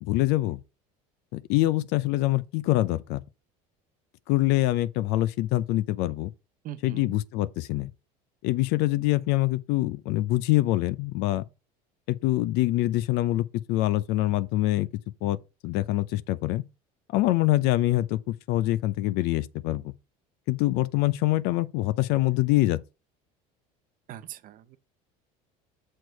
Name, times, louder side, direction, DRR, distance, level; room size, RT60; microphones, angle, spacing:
voice 1, 0.0-0.6 1.3-3.2 4.3-6.3 6.8-7.9 8.4-11.4 12.1-14.9 15.2-15.4 15.6-16.6 17.1-19.9 20.5-22.8, left 17 dB, 65° left, 0.6 m, -25 dB
voice 2, 6.6-7.2 24.1-24.8, right 12 dB, 50° right, 0.7 m, -41 dB
6.5 x 4.6 x 4.6 m
supercardioid pair, 95°, 18 cm